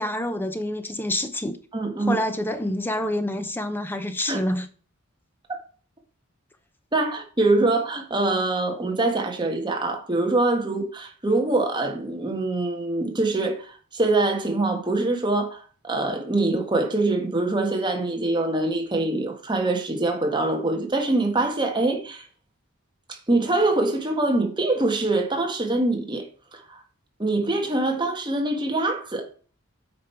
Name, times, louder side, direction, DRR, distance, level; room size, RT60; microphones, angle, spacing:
voice 1, 0.0-1.6 2.1-4.7, left 1 dB, 10° left, 0.6 m, -27 dB
voice 2, 1.7-2.2 4.3-4.4 6.9-22.3 23.1-26.2 26.5-26.8 27.2-29.3, right 2 dB, 20° right, 1.4 m, -24 dB
8.8 x 5.2 x 4.5 m
head